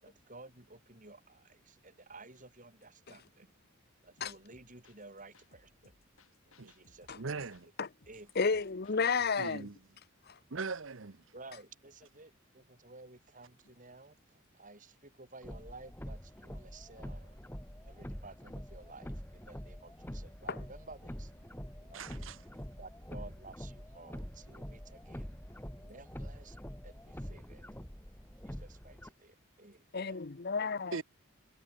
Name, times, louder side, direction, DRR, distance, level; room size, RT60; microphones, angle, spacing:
voice 1, 0.0-3.5 4.0-5.9 6.5-7.4 8.1-8.6 11.3-17.4 17.8-21.3 21.8-22.3 22.8-25.3 25.8-26.6 26.8-27.6 28.4-30.2, right 3 dB, 40° right, 4.6 m, -54 dB
sound 1, 4.2-9.5, left 2 dB, 90° left, 7.2 m, -66 dB
voice 2, 7.1-7.7 9.4-9.8 10.5-11.3 21.9-22.4 30.9-31.0, right 4 dB, 65° right, 0.9 m, -40 dB
voice 3, 8.4-9.7 20.5-20.6 29.9-31.0, left 5 dB, 50° left, 0.8 m, -31 dB
sound 2, 15.4-29.1, equal, 10° left, 2.1 m, -45 dB
head